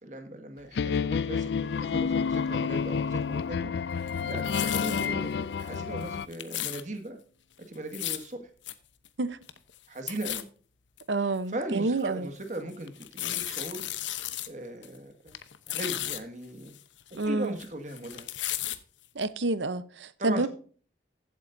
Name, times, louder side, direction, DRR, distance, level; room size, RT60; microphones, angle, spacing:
voice 1, 0.0-7.2 7.7-8.4 9.9-10.5 11.2-13.8 14.5-15.3 15.7-16.7 17.2-18.3 20.2-20.5, right 1 dB, 40° right, 1.9 m, -38 dB
sound 1, 0.7-6.3, left 6 dB, 65° left, 0.4 m, -30 dB
sound 2, 1.9-5.5, left 4 dB, 50° left, 1.1 m, -36 dB
sound 3, 4.1-5.1 5.6-5.7 6.0-6.8 7.7-8.3 8.6-8.7 9.0-9.1 9.4-9.8 10.1-10.4 11.0-11.1 11.6-11.7 12.9-14.5 14.8-15.0 15.3-16.2 16.7-17.7 17.9-18.8 19.2-19.3, left 13 dB, 90° left, 0.9 m, -34 dB
voice 2, 11.1-12.3 17.2-17.5 19.1-20.5, right 2 dB, 80° right, 0.8 m, -28 dB
15.0 x 8.4 x 2.7 m
head